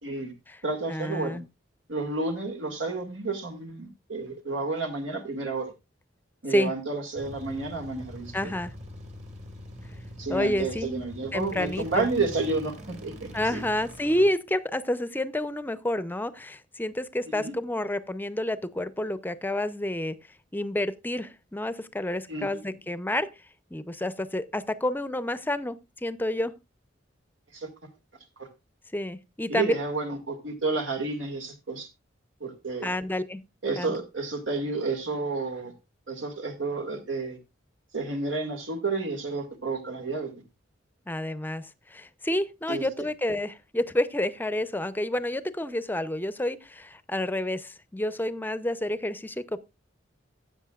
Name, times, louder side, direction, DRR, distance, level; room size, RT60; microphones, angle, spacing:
voice 1, 0.0-0.3 0.6-1.4 1.9-5.7 6.4-8.5 10.2-13.6 17.3-17.4 22.3-22.5 27.5-27.7 28.4-28.5 29.5-31.9 32.4-32.9 33.6-35.7 36.1-37.4 37.9-40.3 42.7-42.8, right 3 dB, 85° right, 1.9 m, -31 dB
voice 2, 0.9-1.4 6.5-6.7 8.3-8.7 10.3-10.9 11.3-12.1 13.3-20.2 20.5-23.3 23.7-26.5 28.9-29.7 32.8-33.4 33.7-34.0 41.1-49.6, left 1 dB, 10° left, 0.6 m, -29 dB
sound 1, 7.2-14.3, equal, 40° right, 1.8 m, -43 dB
15.0 x 8.2 x 2.4 m
head